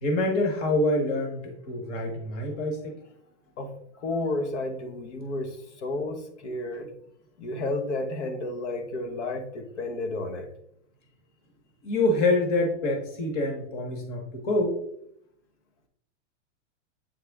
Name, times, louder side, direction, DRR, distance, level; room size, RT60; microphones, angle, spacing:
voice 1, 0.0-3.0 11.8-14.7, left 2 dB, 30° left, 3 dB, 1.2 m, -26 dB
voice 2, 3.6-6.9 7.4-10.5, left 2 dB, 75° left, 6 dB, 1.2 m, -32 dB
8.5 x 3.3 x 3.5 m, 0.71 s
supercardioid pair, 170°, 36 cm